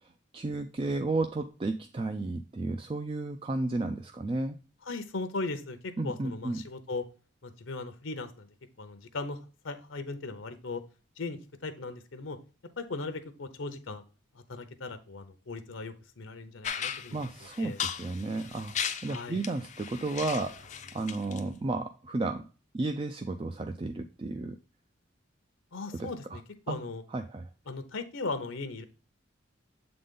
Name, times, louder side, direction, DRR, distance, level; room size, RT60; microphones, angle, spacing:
voice 1, 0.3-4.6 6.0-6.6 17.1-18.7 19.0-22.5 22.7-24.6 26.0-26.4 26.7-26.8 27.1-27.5, right 2 dB, 25° right, 7 dB, 0.3 m, -33 dB
voice 2, 4.8-7.1 7.4-8.5 8.8-9.4 9.6-10.8 11.2-11.4 11.6-12.4 12.8-14.0 14.3-17.2 17.6-17.8 19.1-19.4 25.7-26.4 26.7-27.0 27.7-28.8, left 3 dB, 70° left, 9 dB, 0.7 m, -38 dB
sound 1, 16.6-21.4, left 8 dB, 35° left, 0.5 m, -37 dB
7.6 x 3.9 x 3.7 m, 0.35 s
head